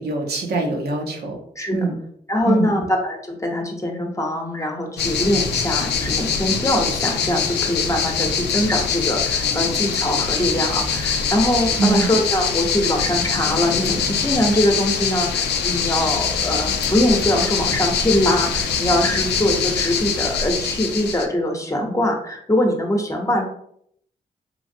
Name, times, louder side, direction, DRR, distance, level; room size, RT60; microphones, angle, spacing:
voice 1, 0.0-1.4 1.7-2.0 2.5-2.7 11.8-12.1, right 3 dB, 70° right, 0 dB, 0.7 m, -23 dB
voice 2, 1.6-1.9 2.3-23.4, left 1 dB, 20° left, 1 dB, 0.8 m, -22 dB
sound 1, 5.0-21.3, left 6 dB, 90° left, 0.4 m, -23 dB
3.1 x 2.5 x 2.6 m, 0.68 s
cardioid pair, 50°, 17 cm